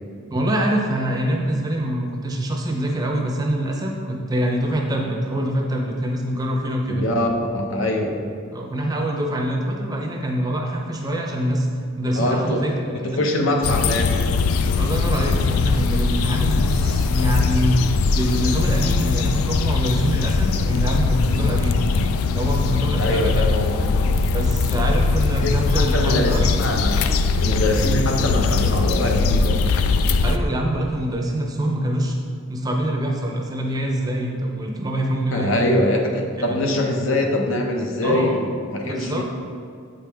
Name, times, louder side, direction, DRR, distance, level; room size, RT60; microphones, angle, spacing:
voice 1, 0.3-7.0 8.5-11.7 12.0-13.2 14.7-21.8 22.3-23.5 24.3-26.5 30.2-32.2 32.5-35.7 36.4-36.6 38.0-38.4 38.9-39.2, right 1 dB, 15° right, 0 dB, 0.5 m, -24 dB
voice 2, 6.9-7.3 7.5-8.2 12.1-12.6 12.9-14.2 23.0-24.2 25.4-27.0 27.4-29.6 35.3-39.2, left 1 dB, 65° left, 1 dB, 0.8 m, -23 dB
sound 1, 13.6-30.4, left 4 dB, 85° left, 0.4 m, -21 dB
8.2 x 5.1 x 3.4 m, 2.3 s
head